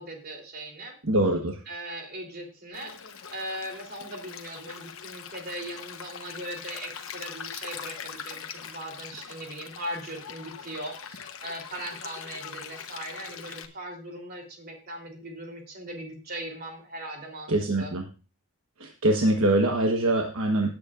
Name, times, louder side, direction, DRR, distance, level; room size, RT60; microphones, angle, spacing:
voice 1, 0.0-0.9 1.7-17.9, right 1 dB, 45° right, 1 dB, 3.4 m, -39 dB
voice 2, 1.0-1.6 17.5-18.0 18.8-20.7, right 1 dB, 70° right, 2 dB, 1.3 m, -23 dB
Stream, 2.7-13.7, left 7 dB, 65° left, 1.1 m, -42 dB
17.5 x 8.5 x 2.5 m, 0.33 s
head